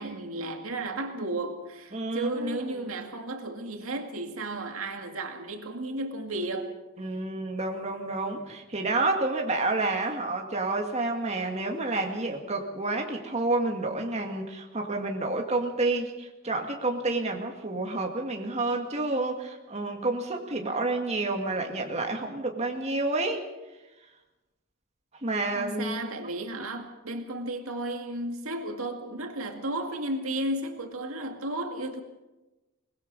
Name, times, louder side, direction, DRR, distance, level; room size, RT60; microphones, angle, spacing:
voice 1, 0.0-6.7 25.6-32.0, right 1 dB, 75° right, 2.1 m, -33 dB
voice 2, 1.9-2.6 7.0-23.4 25.2-26.1, right 2 dB, 30° right, 2.0 m, -29 dB
23.5 x 20.0 x 5.4 m
head